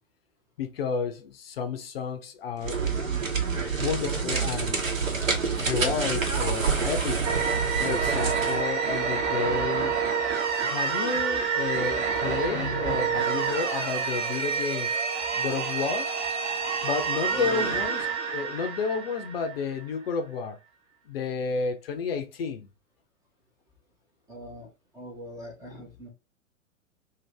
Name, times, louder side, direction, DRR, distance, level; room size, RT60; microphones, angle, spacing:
voice 1, 0.6-2.8 3.6-4.8 5.6-7.2 7.8-10.0 10.6-14.9 15.4-16.1 16.8-18.0 18.3-20.6 21.1-22.7 25.7-25.8, left 6 dB, 45° left, 0.6 m, -31 dB
sound 1, 2.6-8.6, right 5 dB, 75° right, 1.1 m, -27 dB
sound 2, 7.2-19.8, right 6 dB, 35° right, 1.0 m, -28 dB
voice 2, 17.3-17.8 24.3-24.7 24.9-26.1, right 1 dB, 10° right, 0.6 m, -40 dB
2.7 x 2.6 x 3.2 m
figure-of-eight pair, 105°, 40 cm